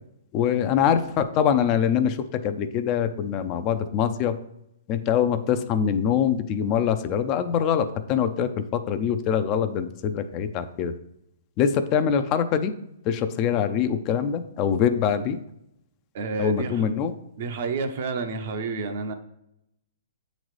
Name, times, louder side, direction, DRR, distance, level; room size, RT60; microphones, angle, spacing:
voice 1, 0.3-4.4 4.9-10.9 11.6-12.7 13.1-15.4 16.4-17.1, left 8 dB, 30° left, 9 dB, 0.4 m, -24 dB
voice 2, 16.1-16.9 17.4-19.1, right 4 dB, 55° right, 7 dB, 0.7 m, -30 dB
7.8 x 3.9 x 3.2 m, 0.80 s
hypercardioid pair, 140°, 0 cm